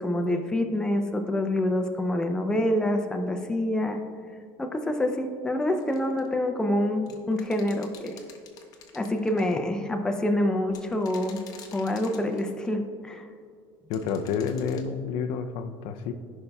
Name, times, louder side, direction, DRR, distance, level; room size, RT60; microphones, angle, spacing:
voice 1, 0.0-4.0 4.6-8.2 8.9-11.4 11.7-13.3, left 1 dB, 10° left, 5 dB, 0.5 m, -26 dB
sound 1, 5.8-6.3 7.1-9.5 10.7-12.7 13.9-14.9, left 6 dB, 45° left, 0.9 m, -49 dB
voice 2, 13.9-16.1, left 6 dB, 75° left, 8 dB, 0.5 m, -29 dB
14.0 x 5.4 x 2.3 m, 2.1 s
cardioid pair, 140°, 9 cm